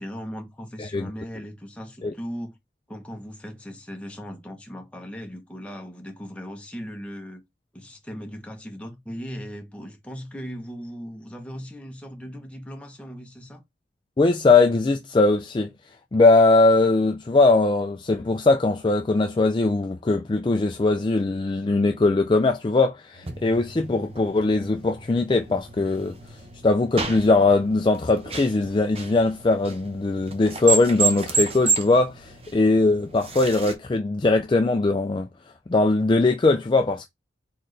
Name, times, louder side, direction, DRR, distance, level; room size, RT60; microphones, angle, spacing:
voice 1, 0.0-2.6 2.9-7.4 7.7-13.6, equal, 5° left, 0.9 m, -38 dB
voice 2, 0.8-1.1 2.0-2.1 14.2-15.7 16.1-26.2 26.6-35.3 35.7-37.1, left 3 dB, 25° left, 0.3 m, -20 dB
sound 1, 23.1-28.7, right 1 dB, 85° right, 1.2 m, -49 dB
sound 2, 23.2-33.7, right 4 dB, 30° right, 0.7 m, -31 dB
4.3 x 3.8 x 3.2 m
head